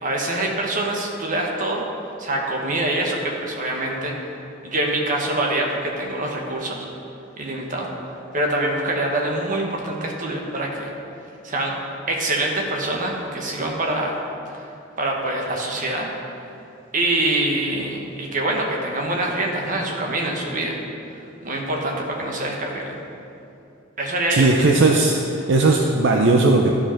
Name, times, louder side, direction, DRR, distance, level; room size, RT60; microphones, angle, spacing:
voice 1, 0.0-1.8 2.2-4.3 4.6-6.9 7.4-7.9 8.3-10.9 11.4-11.7 12.1-14.2 15.0-16.1 16.9-20.8 21.4-23.0 24.0-24.5, right 1 dB, 40° right, 0 dB, 1.3 m, -25 dB
voice 2, 24.3-26.7, right 3 dB, 65° right, 1 dB, 0.6 m, -17 dB
12.0 x 5.1 x 5.7 m, 2.7 s
head